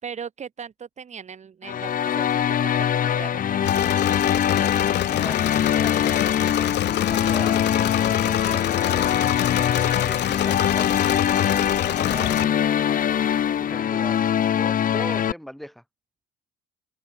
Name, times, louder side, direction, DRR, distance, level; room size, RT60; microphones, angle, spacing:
voice 1, 0.0-3.9, right 7 dB, 35° right, 4.5 m, -39 dB
sound 1, 1.6-15.3, left 9 dB, 45° left, 2.0 m, -23 dB
Engine / Mechanisms, 3.7-12.4, left 13 dB, 65° left, 2.9 m, -27 dB
voice 2, 7.1-11.0 13.6-14.3 14.6-15.8, equal, ahead, 5.3 m, -40 dB
cardioid pair, 120°, 19 cm